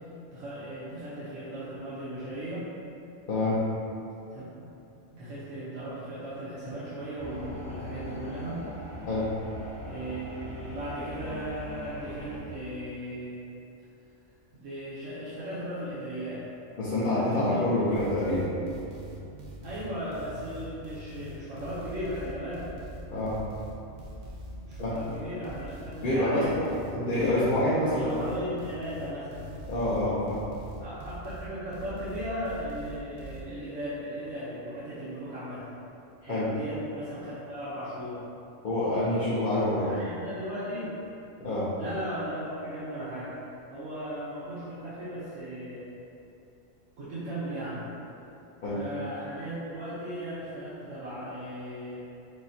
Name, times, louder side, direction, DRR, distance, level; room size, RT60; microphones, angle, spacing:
voice 1, 0.3-2.7 4.3-4.6 5.1-8.7 9.8-13.4 14.5-16.4 17.1-17.7 19.6-22.7 24.6-26.5 27.3-27.5 27.9-29.4 30.8-35.6 36.3-38.2 39.8-41.0 41.8-43.3 43.7-45.9 47.0-47.9 48.7-52.0, equal, 85° right, -11 dB, 1.2 m, -37 dB
voice 2, 3.3-3.6 9.1-9.2 16.8-18.6 23.1-23.3 24.8-24.9 26.0-28.3 29.7-30.4 36.3-36.5 38.6-39.9 41.4-41.7 48.6-48.8, left 1 dB, 50° left, -11 dB, 0.8 m, -27 dB
sound 1, 7.2-12.4, equal, 10° left, 0.4 m, -41 dB
sound 2, 17.9-33.4, equal, 55° right, 0.5 m, -43 dB
6.5 x 2.2 x 2.8 m, 2.8 s
omnidirectional pair, 1.3 m